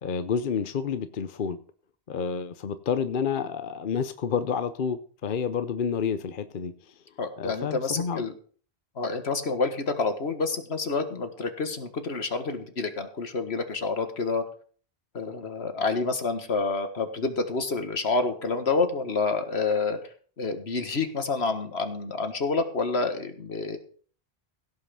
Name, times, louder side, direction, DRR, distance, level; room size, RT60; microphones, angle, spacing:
voice 1, 0.0-1.6 2.1-6.7 7.4-8.2, left 6 dB, 55° left, 12 dB, 0.8 m, -29 dB
voice 2, 7.2-8.3 9.0-14.4 15.1-20.0 20.4-23.8, left 4 dB, 75° left, 8 dB, 1.9 m, -28 dB
16.5 x 5.8 x 6.8 m, 0.44 s
omnidirectional pair, 1.1 m